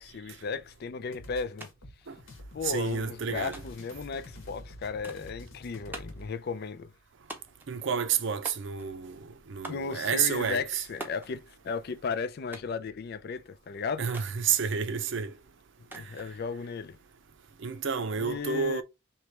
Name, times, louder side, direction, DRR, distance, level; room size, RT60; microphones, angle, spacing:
voice 1, 0.0-1.7 2.5-6.9 9.7-14.1 15.9-17.0 18.2-18.8, left 5 dB, 50° left, 0.4 m, -35 dB
sound 1, 1.1-6.3, left 1 dB, 75° left, 1.2 m, -48 dB
sound 2, 1.6-1.7 2.0-2.7 3.5-3.9 5.0-5.4 5.9-6.3 7.3-7.7 8.4-9.0 9.6-9.9 11.0-11.3 12.5-12.8 14.1-14.4 15.9-16.3, right 2 dB, 10° right, 0.7 m, -44 dB
voice 2, 2.6-3.6 7.7-10.8 14.0-15.3 15.9-16.0 17.6-18.8, right 6 dB, 60° right, 0.6 m, -30 dB
3.2 x 3.0 x 4.4 m
head